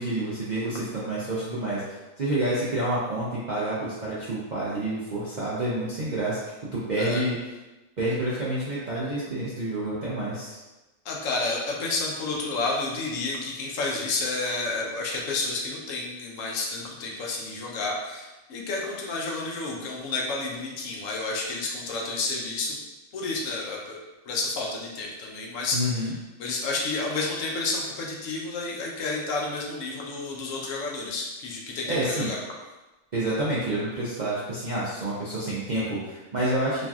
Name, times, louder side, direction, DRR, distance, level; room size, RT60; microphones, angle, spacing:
voice 1, 0.0-6.4 6.7-7.4 8.0-10.6 25.7-26.2 31.9-32.3 33.1-36.9, right 1 dB, 55° right, -9 dB, 0.5 m, -28 dB
voice 2, 11.1-22.8 23.1-23.8 24.3-26.1 26.4-32.4, left 3 dB, 80° left, -1 dB, 1.0 m, -30 dB
3.0 x 2.5 x 2.3 m, 1.1 s
omnidirectional pair, 1.4 m